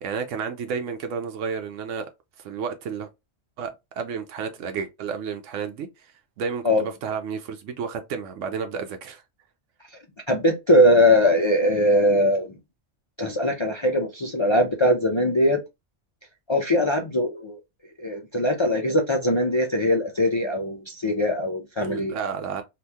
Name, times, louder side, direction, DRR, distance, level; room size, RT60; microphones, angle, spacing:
voice 1, 0.0-2.1 2.4-3.1 3.6-3.7 4.0-9.2 21.8-22.6, right 6 dB, 85° right, 0.9 m, -31 dB
voice 2, 10.3-12.5 13.2-15.6 16.5-17.6 18.0-22.1, left 1 dB, 50° left, 0.3 m, -21 dB
2.8 x 2.5 x 3.4 m
omnidirectional pair, 1.3 m